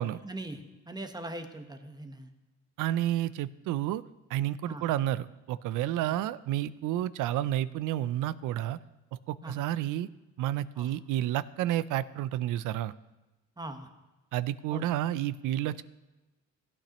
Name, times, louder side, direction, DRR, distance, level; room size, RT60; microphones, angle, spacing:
voice 1, 0.0-2.3 4.6-4.9 9.4-9.6 10.8-10.9 13.6-13.9 14.7-14.9, right 1 dB, 15° right, 6 dB, 1.0 m, -41 dB
voice 2, 2.8-4.0 4.3-8.8 9.3-10.1 10.4-12.9 14.3-15.8, right 13 dB, 85° right, 17 dB, 0.5 m, -30 dB
16.0 x 8.5 x 3.0 m, 1.1 s
cardioid pair, 90°, 30 cm